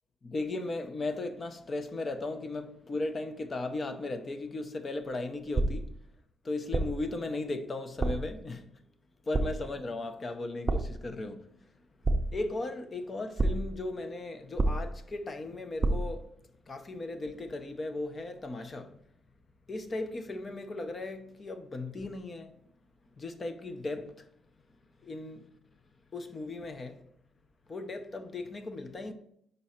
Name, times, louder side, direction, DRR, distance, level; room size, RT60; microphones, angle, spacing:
voice 1, 0.2-5.9 6.4-8.7 9.3-11.4 12.3-16.3 16.7-19.0 19.7-22.6 23.2-24.3 25.0-25.5 26.1-27.0 27.7-29.1, left 2 dB, 35° left, 0.7 m, -36 dB
sound 1, 5.6-6.0 6.7-7.1 8.0-8.4 9.3-9.8 10.7-11.1 12.0-12.6 13.4-13.8 14.6-15.1 15.8-16.2, right 2 dB, 20° right, 0.6 m, -29 dB
5.3 x 4.6 x 4.3 m
cardioid pair, 90°, 0 cm